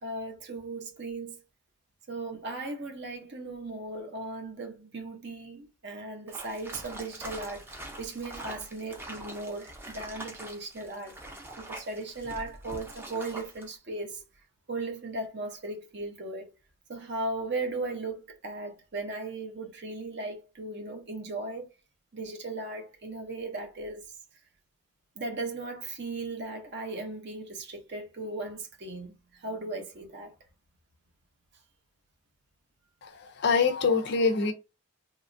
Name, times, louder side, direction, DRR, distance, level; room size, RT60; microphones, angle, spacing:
voice 1, 0.0-1.4 2.1-11.2 11.7-14.2 14.7-16.5 16.9-21.7 22.1-24.1 25.2-30.3, right 2 dB, 50° right, 0.7 m, -37 dB
sound 1, 6.3-13.7, right 1 dB, 10° right, 0.4 m, -44 dB
voice 2, 33.0-34.5, left 5 dB, 50° left, 0.4 m, -25 dB
2.9 x 2.3 x 2.5 m
head